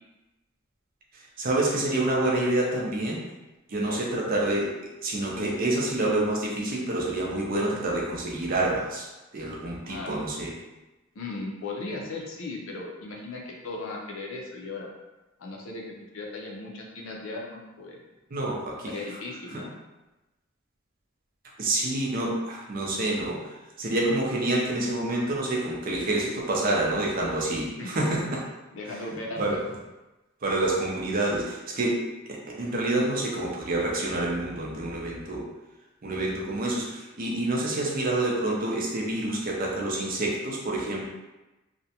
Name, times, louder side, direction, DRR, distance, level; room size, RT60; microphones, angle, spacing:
voice 1, 1.4-3.2 3.7-4.7 5.0-9.1 9.3-10.5 18.3-18.9 19.5-19.6 21.6-28.4 29.4-29.6 30.4-35.5 36.0-41.1, right 2 dB, 45° right, -2 dB, 0.5 m, -27 dB
voice 2, 9.8-10.2 11.1-14.9 15.4-18.0 18.9-19.7 27.8-27.9 28.7-29.6, left 2 dB, 70° left, -1 dB, 0.5 m, -37 dB
2.4 x 2.1 x 2.7 m, 1.1 s
head